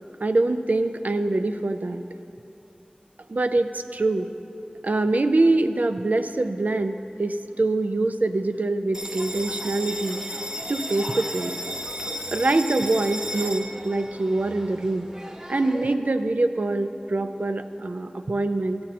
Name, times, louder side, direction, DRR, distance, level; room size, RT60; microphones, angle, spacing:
voice 1, 0.2-2.0 3.3-4.3 4.8-10.2 10.7-11.6 12.3-15.1 15.5-18.8, right 2 dB, 70° right, 9 dB, 0.4 m, -24 dB
Bell, 8.9-15.9, equal, 20° right, 0.7 m, -34 dB
12.5 x 8.6 x 4.1 m, 2.9 s
wide cardioid pair, 45°, 3 cm